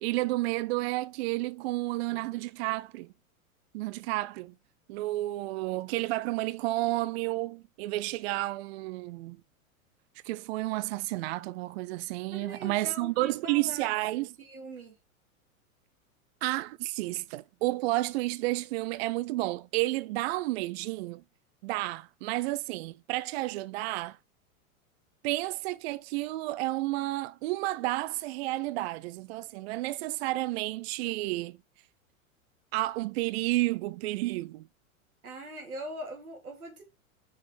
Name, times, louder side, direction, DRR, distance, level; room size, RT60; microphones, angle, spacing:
voice 1, 0.0-3.1 3.7-4.5 4.9-9.4 10.2-14.4 16.4-21.2 21.6-24.2 25.2-31.6 32.7-34.7, right 19 dB, 50° right, 0.4 m, -31 dB
voice 2, 12.3-13.9 14.4-14.9 35.2-36.8, right 1 dB, 90° right, 2.8 m, -42 dB
5.8 x 5.1 x 4.7 m
hypercardioid pair, 105°, 43 cm